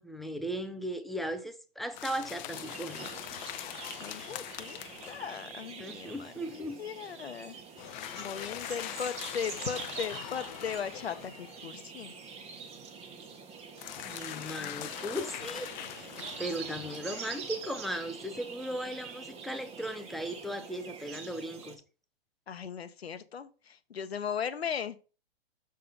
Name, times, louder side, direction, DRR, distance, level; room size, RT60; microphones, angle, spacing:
voice 1, 0.0-3.1 5.8-6.8 14.0-16.1 16.4-21.8, equal, ahead, 0.4 m, -37 dB
sound 1, 1.9-5.5 7.8-11.7 13.8-17.7, left 13 dB, 50° left, 0.6 m, -42 dB
sound 2, 2.5-21.8, right 5 dB, 20° right, 1.2 m, -45 dB
voice 2, 4.0-7.6 8.2-12.1 14.3-14.8 22.5-25.0, left 7 dB, 90° left, 0.9 m, -38 dB
6.6 x 3.7 x 5.5 m
hypercardioid pair, 125°, 30 cm